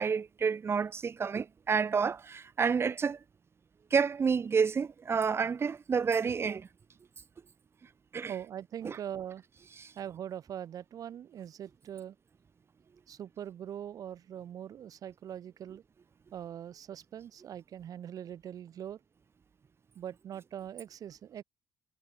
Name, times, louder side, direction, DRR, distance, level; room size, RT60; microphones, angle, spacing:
voice 1, 0.0-3.2 3.9-6.7 8.1-8.3 8.8-9.0 9.8-9.9, right 6 dB, 35° right, 1.1 m, -29 dB
voice 2, 8.3-9.4 9.9-12.1 13.1-15.8 16.3-19.0 19.9-21.4, right 10 dB, 60° right, 4.9 m, -42 dB
supercardioid pair, 75°, 7 cm